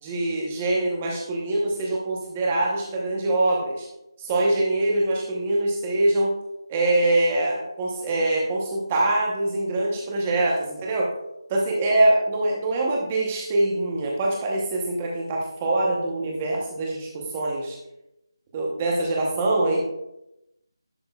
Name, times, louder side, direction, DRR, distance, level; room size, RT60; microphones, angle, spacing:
voice 1, 0.0-3.9 4.2-6.3 6.7-11.1 11.5-17.8 18.5-19.8, right 2 dB, 10° right, -2 dB, 0.9 m, -24 dB
11.0 x 6.2 x 2.3 m, 0.88 s
figure-of-eight pair, 175°, 2 cm